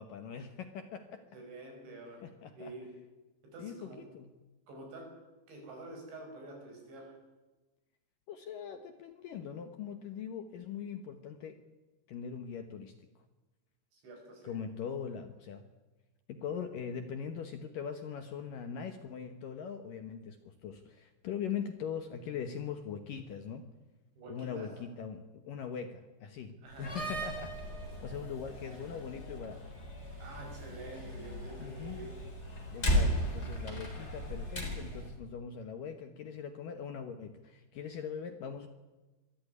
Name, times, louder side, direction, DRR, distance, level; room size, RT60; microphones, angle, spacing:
voice 1, 0.0-1.2 2.2-2.7 3.6-4.3 8.3-11.6 12.1-12.9 14.4-15.6 16.3-23.7 24.3-29.6 31.6-32.1 32.7-38.7, left 7 dB, 70° left, 8 dB, 2.2 m, -41 dB
voice 2, 1.3-2.2 2.6-2.9 3.5-4.0 4.7-5.1 5.5-7.1 13.9-14.6 24.2-24.7 26.6-27.0 30.2-32.1, right 2 dB, 75° right, 2 dB, 8.2 m, -47 dB
Slam, 26.7-35.1, equal, 15° left, 3.9 m, -36 dB
23.5 x 14.0 x 9.6 m, 1.1 s
omnidirectional pair, 5.2 m